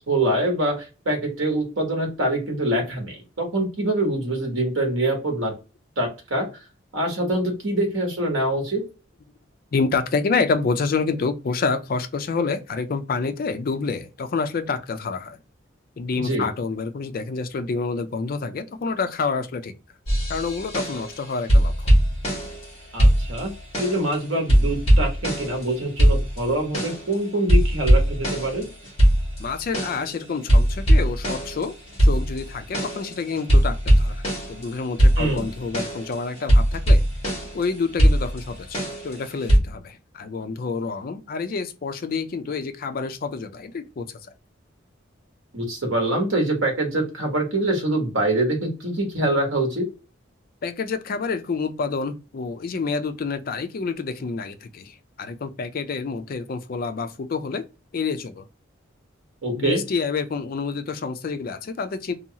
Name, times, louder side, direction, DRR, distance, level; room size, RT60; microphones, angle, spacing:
voice 1, 0.1-5.5 6.0-6.5 6.9-8.8 16.2-16.5 22.9-23.5 23.8-28.7 35.2-35.5 45.5-49.9 59.4-59.8, right 1 dB, 80° right, 1.1 m, -24 dB
voice 2, 9.7-15.4 16.0-19.7 20.3-21.9 29.4-31.7 32.0-34.2 34.5-37.0 37.5-44.1 50.6-57.7 57.9-58.5 59.5-62.1, left 4 dB, 45° left, 0.4 m, -28 dB
sound 1, 20.1-21.2 21.5-22.7 23.0-24.1 24.5-25.7 26.0-27.1 27.5-30.1 30.5-34.7 35.0-37.6 38.0-39.6, equal, 30° left, 1.2 m, -20 dB
2.8 x 2.2 x 2.7 m
head